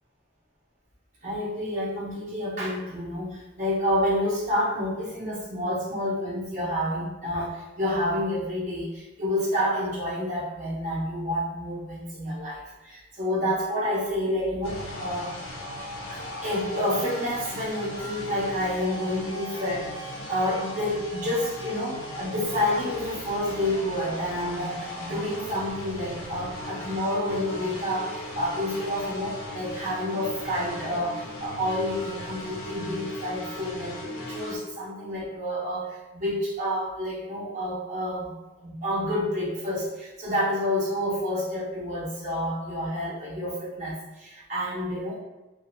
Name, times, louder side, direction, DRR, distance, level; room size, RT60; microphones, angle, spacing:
voice 1, 1.2-15.3 16.1-38.3 38.6-45.2, left 1 dB, 40° right, -8 dB, 1.0 m, -29 dB
sound 1, 14.6-34.6, left 1 dB, 75° left, 0.6 m, -38 dB
2.8 x 2.0 x 2.6 m, 1.1 s
head